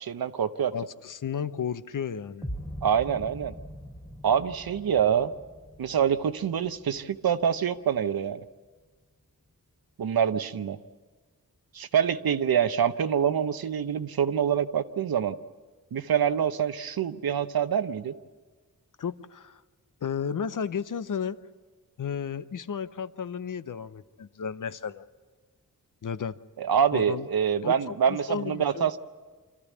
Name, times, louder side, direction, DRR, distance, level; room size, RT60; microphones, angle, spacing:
voice 1, 0.0-0.7 2.8-3.5 4.2-5.3 5.8-8.4 10.0-10.8 11.7-15.4 15.9-18.1 26.6-29.0, right 8 dB, 80° right, 11 dB, 0.8 m, -26 dB
voice 2, 0.7-2.5 19.0-19.6 20.0-21.4 22.0-25.0 26.0-26.4 26.9-27.3 27.6-28.9, left 7 dB, 60° left, 13 dB, 0.7 m, -33 dB
sound 1, 2.4-8.4, equal, 5° left, 1.2 m, -43 dB
25.5 x 14.0 x 8.4 m, 1.4 s
wide cardioid pair, 80°, 36 cm